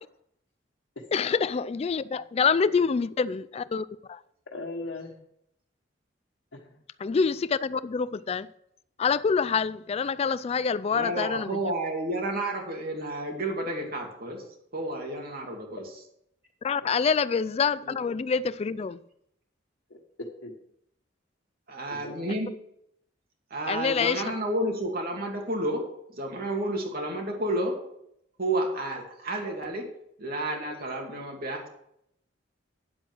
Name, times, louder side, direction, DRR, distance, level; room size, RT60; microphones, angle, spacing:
voice 1, 1.1-4.2 7.0-8.5 9.0-11.7 16.6-19.0 22.3-22.4 23.7-24.2, left 5 dB, 35° left, 0.3 m, -26 dB
voice 2, 4.5-5.2 6.5-6.8 16.8-16.9 19.9-20.5 21.9-22.1, left 2 dB, 75° left, 1.4 m, -39 dB
voice 3, 10.9-14.4 14.7-15.8 17.8-18.0 21.7-22.5 23.5-25.8 26.1-27.7 28.4-29.9 30.2-31.7, right 1 dB, 55° right, 2.5 m, -31 dB
9.8 x 7.8 x 6.2 m
head